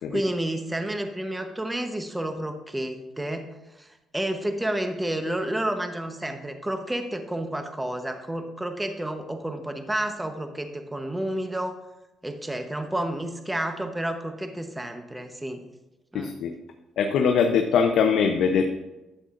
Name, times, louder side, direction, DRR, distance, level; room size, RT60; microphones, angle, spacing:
voice 1, 0.1-3.5 3.8-3.9 4.1-11.8 12.2-15.6 16.1-16.3, right 1 dB, 10° right, 6 dB, 0.9 m, -30 dB
voice 2, 16.1-16.5 17.0-18.6, left 6 dB, 80° left, 5 dB, 0.6 m, -22 dB
11.5 x 7.7 x 2.5 m, 0.99 s
cardioid pair, 90°, 0 cm